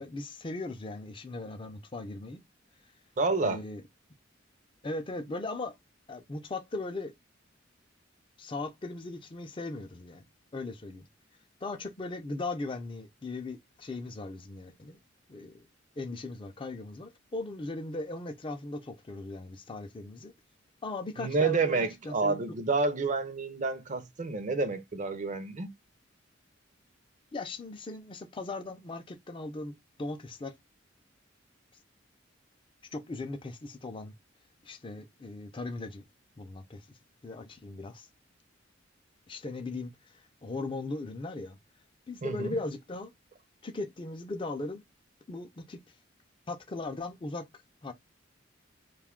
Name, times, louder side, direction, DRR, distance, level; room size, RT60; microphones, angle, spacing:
voice 1, 0.0-2.4 3.4-3.8 4.8-5.8 6.1-7.1 8.4-10.2 10.5-11.1 11.6-15.0 15.3-15.7 16.0-20.3 20.8-22.6 27.3-30.5 32.9-34.2 34.6-36.0 36.4-36.9 37.2-38.1 39.3-39.9 40.4-41.6 42.1-43.1 43.6-44.8 45.3-45.8 46.5-47.5 47.8-47.9, left 2 dB, 25° left, 0.5 m, -38 dB
voice 2, 3.2-3.6 21.2-25.7 42.2-42.6, right 3 dB, 40° right, 0.5 m, -29 dB
2.6 x 2.3 x 3.5 m
head